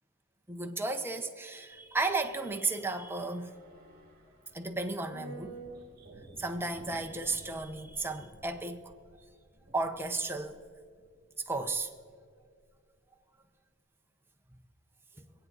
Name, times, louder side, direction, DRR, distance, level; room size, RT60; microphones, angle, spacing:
voice 1, 0.5-3.5 4.5-5.6 6.4-8.8 9.7-10.6 11.5-11.9 15.2-15.3, right 3 dB, 10° right, 0.9 m, -34 dB
sound 1, 1.7-12.2 12.4-12.5, right 2 dB, 45° right, 1.7 m, -53 dB
25.5 x 8.9 x 4.0 m
head